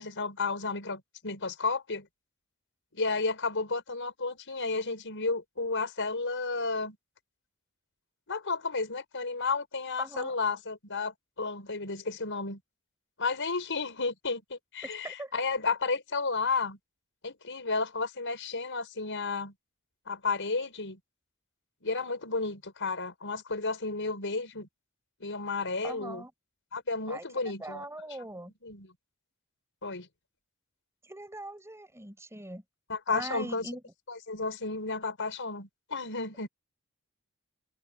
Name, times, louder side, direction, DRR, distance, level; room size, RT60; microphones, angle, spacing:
voice 1, 0.0-2.1 2.9-7.0 8.3-12.6 13.2-16.8 17.2-19.5 20.1-21.0 21.8-24.7 25.2-26.2 26.7-27.8 28.6-28.9 29.8-30.1 32.9-33.7 34.1-36.5, left 4 dB, 55° left, 6.1 m, -32 dB
voice 2, 10.0-10.3 14.8-15.3 25.8-26.3 27.1-28.5 31.0-32.6 33.1-33.8, right 1 dB, 10° right, 6.5 m, -41 dB
open air
head